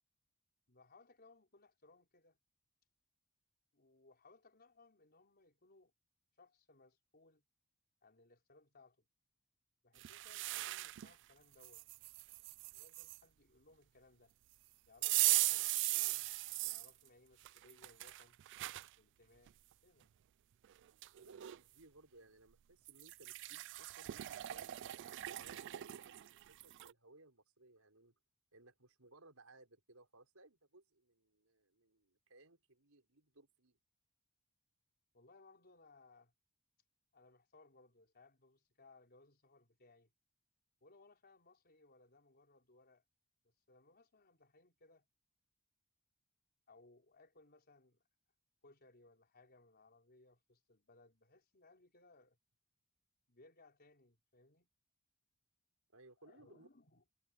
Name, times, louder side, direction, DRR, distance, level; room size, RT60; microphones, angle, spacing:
voice 1, 0.7-2.4 3.7-5.9 6.4-7.4 8.0-9.0 9.8-11.9 12.4-12.5 12.7-14.3 14.9-16.3 16.6-18.4 19.0-19.5 19.8-20.1 35.1-36.3 37.1-40.1 40.8-43.0 43.4-45.0 46.7-48.0 48.6-52.4 53.3-54.7 56.2-57.0, left 3 dB, 50° left, 4.5 m, -65 dB
sound 1, 10.0-11.1 11.6-13.2 15.0-16.9 17.4-18.9 19.5-19.6 20.6-20.7 21.0-21.6 22.9-26.9, right 19 dB, 60° right, 0.3 m, -38 dB
voice 2, 21.2-24.8 25.2-28.1 28.5-33.8 55.9-56.7, right 2 dB, 75° right, 5.8 m, -63 dB
head